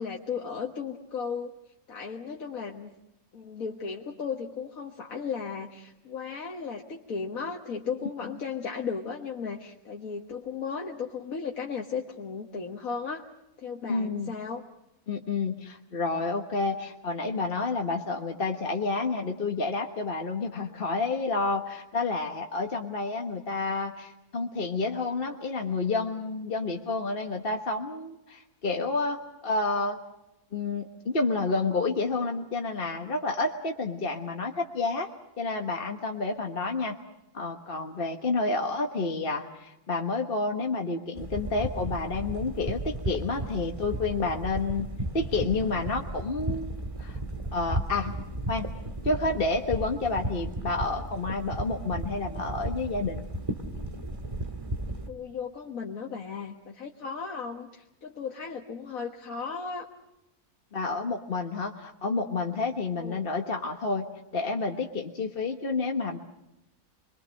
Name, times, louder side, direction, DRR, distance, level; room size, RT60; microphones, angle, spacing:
voice 1, 0.0-1.5 1.9-2.9 3.3-13.3 13.6-14.6 55.1-59.9 63.0-63.3, left 5 dB, 65° left, 0 dB, 1.8 m, -35 dB
voice 2, 13.9-14.3 15.1-30.0 30.5-35.1 35.4-37.0 37.3-44.9 45.1-47.2 47.5-48.1 48.5-48.7 49.0-53.3 60.7-66.2, left 3 dB, 40° left, 3 dB, 1.5 m, -29 dB
sound 1, 41.2-55.1, right 1 dB, 20° right, 1.8 m, -35 dB
27.0 x 22.5 x 6.4 m, 0.91 s
omnidirectional pair, 1.6 m